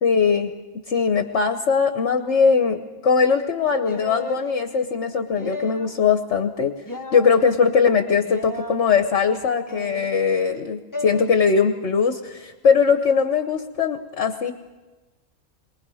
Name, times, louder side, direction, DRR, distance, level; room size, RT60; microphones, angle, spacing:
voice 1, 0.0-0.5 0.9-6.7 7.1-14.5, left 5 dB, 55° left, 7 dB, 1.3 m, -20 dB
sound 1, 3.9-4.4 5.3-6.0 6.9-7.3 8.3-8.8 9.7-10.2 10.9-11.3, left 1 dB, 15° left, 1.2 m, -33 dB
28.0 x 23.0 x 4.9 m, 1.2 s
omnidirectional pair, 1.5 m